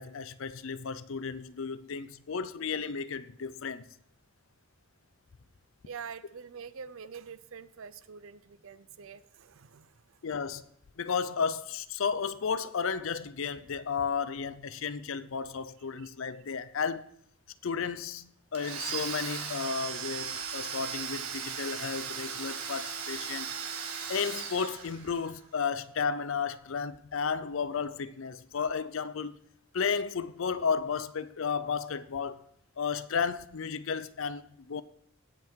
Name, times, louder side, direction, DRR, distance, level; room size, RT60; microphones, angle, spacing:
voice 1, 0.0-3.9 10.2-10.7 11.0-17.0 17.6-23.5 23.7-23.8 24.1-29.4 29.7-32.5 32.8-34.8, left 6 dB, 65° left, 0.5 m, -33 dB
voice 2, 5.8-9.9, right 6 dB, 70° right, 0.6 m, -45 dB
Domestic sounds home sounds, 18.6-25.3, right 6 dB, 85° right, 1.7 m, -37 dB
16.5 x 5.8 x 4.5 m
head